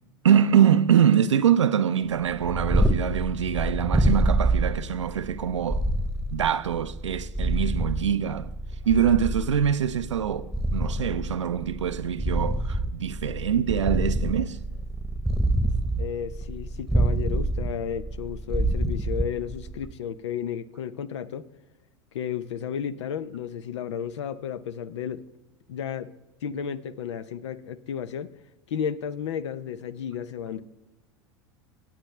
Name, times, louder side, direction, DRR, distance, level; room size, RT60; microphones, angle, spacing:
voice 1, 0.2-5.8 6.3-8.5 8.8-14.6, right 8 dB, 90° right, 0.6 m, -24 dB
Purr, 2.2-19.9, right 1 dB, ahead, 1.1 m, -27 dB
voice 2, 16.0-21.5 22.1-25.2 25.7-26.1 26.4-28.3 28.7-30.6, left 8 dB, 75° left, 0.8 m, -33 dB
25.0 x 8.9 x 3.3 m
hypercardioid pair, 85°, 15 cm